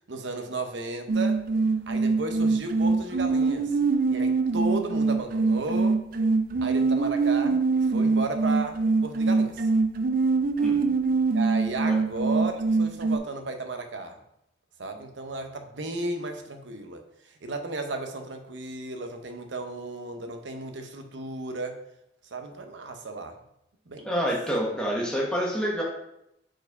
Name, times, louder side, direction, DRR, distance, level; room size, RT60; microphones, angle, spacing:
voice 1, 0.1-1.4 1.9-3.7 4.1-6.0 6.6-9.7 11.3-14.2 14.8-17.0 17.4-21.8 22.3-23.4 23.9-24.2, right 2 dB, 75° right, 6 dB, 0.7 m, -34 dB
sound 1, 1.1-13.2, right 4 dB, 50° right, 0.4 m, -24 dB
voice 2, 10.6-10.9 24.0-25.8, equal, 5° left, -3 dB, 1.3 m, -27 dB
4.6 x 4.5 x 4.8 m, 0.80 s
head